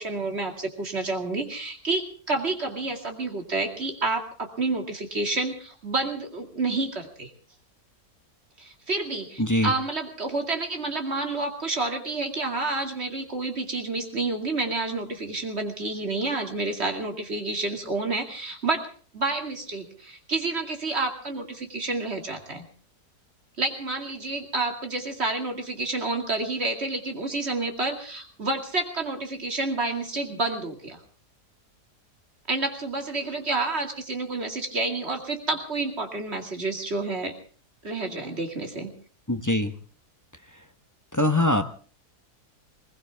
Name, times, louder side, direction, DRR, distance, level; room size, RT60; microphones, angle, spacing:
voice 1, 0.0-7.3 8.6-18.9 19.1-22.6 23.6-31.0 32.5-37.3 37.8-38.9, right 3 dB, 40° right, 3 dB, 2.6 m, -29 dB
voice 2, 9.4-9.7 39.3-39.7 41.1-41.6, left 1 dB, 15° left, 7 dB, 0.9 m, -22 dB
20.5 x 20.0 x 3.5 m, 0.41 s
omnidirectional pair, 1.7 m